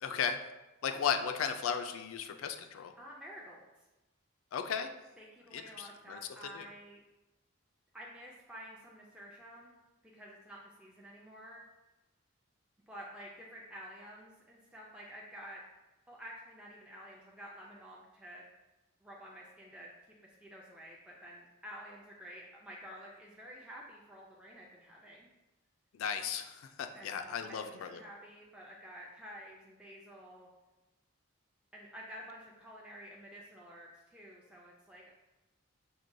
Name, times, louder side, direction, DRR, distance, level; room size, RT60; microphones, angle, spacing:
voice 1, 0.0-0.4 0.8-2.9 4.5-4.9 5.5-6.7 25.9-28.0, left 7 dB, 75° left, 8 dB, 0.4 m, -36 dB
voice 2, 3.0-3.6 5.2-7.0 7.9-9.8 10.0-11.6 12.9-15.6 16.1-18.4 19.0-19.9 20.2-25.3 26.9-30.5 31.7-35.1, equal, 5° right, -4 dB, 0.4 m, -50 dB
6.0 x 2.2 x 2.6 m, 1.1 s
head